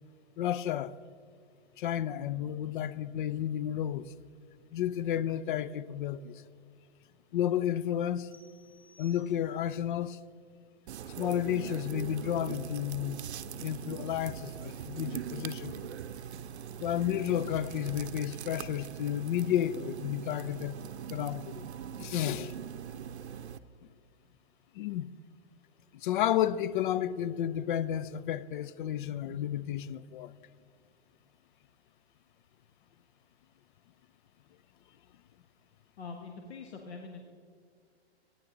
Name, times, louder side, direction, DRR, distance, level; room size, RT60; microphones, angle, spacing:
voice 1, 0.4-1.0 1.8-4.1 4.7-6.4 7.3-8.3 9.0-10.2 11.2-13.3 13.6-15.9 16.8-20.8 21.1-21.6 22.0-22.5 24.8-25.1 26.0-30.3, left 11 dB, 50° left, 0.5 m, -32 dB
sound 1, 8.3-9.9, equal, 5° left, 2.3 m, -61 dB
sound 2, 10.9-23.6, right 8 dB, 80° right, 0.6 m, -42 dB
sound 3, 12.9-18.4, right 7 dB, 45° right, 0.7 m, -51 dB
voice 2, 36.0-37.2, left 4 dB, 80° left, 1.4 m, -43 dB
15.5 x 9.9 x 3.9 m
hypercardioid pair, 145°, 32 cm